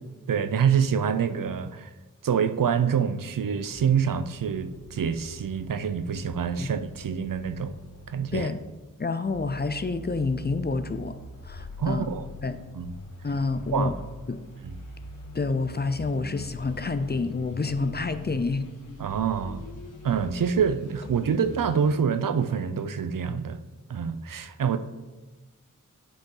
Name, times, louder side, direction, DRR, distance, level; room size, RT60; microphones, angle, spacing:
voice 1, 0.3-1.9 2.2-7.7 8.1-8.5 11.8-12.2 12.7-12.9 13.7-13.9 19.0-19.6 20.0-23.6 23.9-24.8, right 7 dB, 75° right, 10 dB, 0.5 m, -26 dB
sound 1, 3.7-8.4 9.2-21.9, left 1 dB, 70° left, 2.0 m, -43 dB
voice 2, 9.0-11.2 11.4-12.1 12.4-12.6 13.2-13.9 14.3-14.4 15.3-18.7, left 3 dB, 30° left, 11 dB, 0.4 m, -28 dB
8.6 x 5.1 x 3.8 m, 1.2 s
wide cardioid pair, 70°, 33 cm